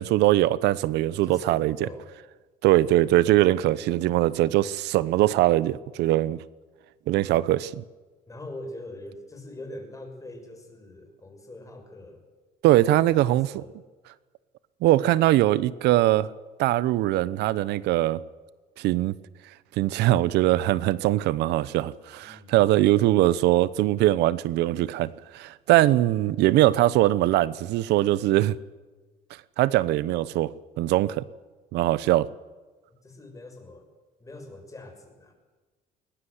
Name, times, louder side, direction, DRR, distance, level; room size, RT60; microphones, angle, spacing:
voice 1, 0.0-1.8 2.6-6.4 7.1-7.8 12.6-13.5 14.8-16.3 16.6-18.2 18.8-19.1 19.8-28.6 29.6-30.5 30.8-31.2 31.7-32.3, right 15 dB, 85° right, 19 dB, 0.9 m, -21 dB
voice 2, 1.2-2.1 8.3-12.3 12.9-13.7 22.2-22.6 33.0-33.9 34.2-35.3, left 1 dB, 20° left, 5 dB, 6.3 m, -43 dB
21.0 x 20.5 x 8.1 m, 1.3 s
cardioid pair, 110°, 17 cm